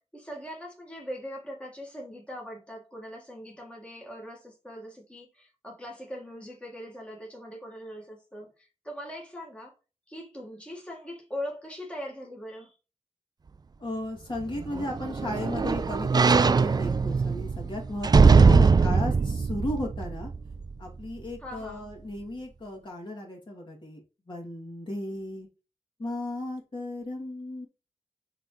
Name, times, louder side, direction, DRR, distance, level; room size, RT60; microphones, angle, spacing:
voice 1, 0.0-9.7 10.1-12.7 18.4-19.2 21.4-21.9, equal, 10° left, 1.7 m, -41 dB
voice 2, 13.8-20.3 20.8-24.0 24.3-25.5 26.0-27.7, left 1 dB, 45° left, 2.5 m, -35 dB
thin metal sliding door close slam, 14.4-20.7 21.2-21.3, right 4 dB, 35° right, 0.3 m, -21 dB
9.7 x 3.5 x 3.1 m
wide cardioid pair, 95°, 11 cm